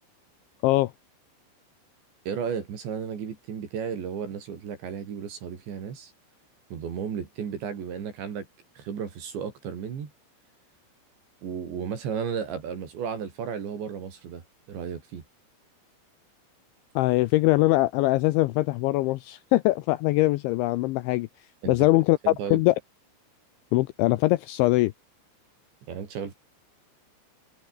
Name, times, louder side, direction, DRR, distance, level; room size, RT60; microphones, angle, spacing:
voice 1, 2.3-6.1 6.7-8.5 8.8-10.1 11.4-14.4 14.7-15.2 21.6-21.9 22.2-22.6 25.9-26.3, right 7 dB, 60° right, 5.7 m, -34 dB
voice 2, 17.0-21.3 21.7-22.8 23.7-24.9, left 19 dB, 80° left, 2.7 m, -22 dB
omnidirectional pair, 6.0 m